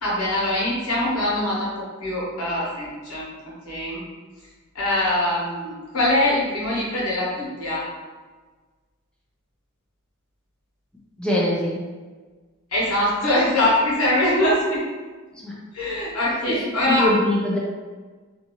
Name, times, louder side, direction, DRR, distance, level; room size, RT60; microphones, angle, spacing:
voice 1, 0.0-1.7 2.0-3.3 3.6-4.0 4.7-7.9 12.7-14.8 15.7-17.1, left 1 dB, 90° left, -6 dB, 1.0 m, -23 dB
voice 2, 11.2-11.8 15.4-15.5 16.5-16.6 16.9-17.6, left 1 dB, 5° left, -6 dB, 0.5 m, -22 dB
2.6 x 2.4 x 2.9 m, 1.4 s
head